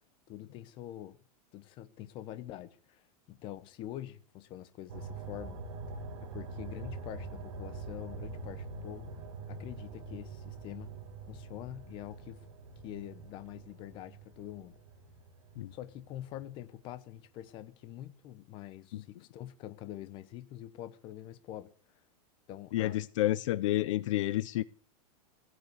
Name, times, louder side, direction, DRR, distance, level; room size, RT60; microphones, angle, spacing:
voice 1, 0.3-1.2 1.5-5.6 6.2-9.1 9.5-10.9 11.3-12.4 12.8-14.8 15.7-21.7 22.5-23.0, left 13 dB, 25° left, 1.0 m, -45 dB
sound 1, 4.9-16.5 16.9-17.0, right 3 dB, 55° right, 2.2 m, -44 dB
voice 2, 22.7-24.6, left 15 dB, 55° left, 0.7 m, -30 dB
17.0 x 8.1 x 8.1 m
supercardioid pair, 170°, 19 cm